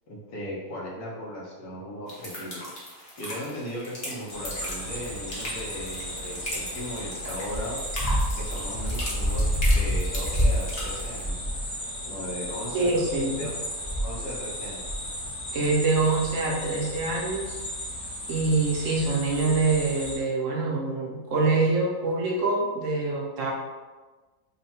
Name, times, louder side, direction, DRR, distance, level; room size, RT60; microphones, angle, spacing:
voice 1, 0.1-2.7 3.2-7.8 8.4-11.5 12.0-13.1 13.4-13.5 14.0-14.9, equal, 85° left, -5 dB, 1.6 m, -37 dB
sound 1, 2.1-11.2, left 1 dB, 45° left, 1.2 m, -38 dB
sound 2, 4.3-20.1, equal, 20° left, 1.0 m, -30 dB
voice 2, 12.7-13.5 15.5-17.6 18.3-23.5, right 3 dB, 60° right, -3 dB, 1.0 m, -25 dB
3.7 x 2.2 x 4.2 m, 1.3 s
omnidirectional pair, 1.6 m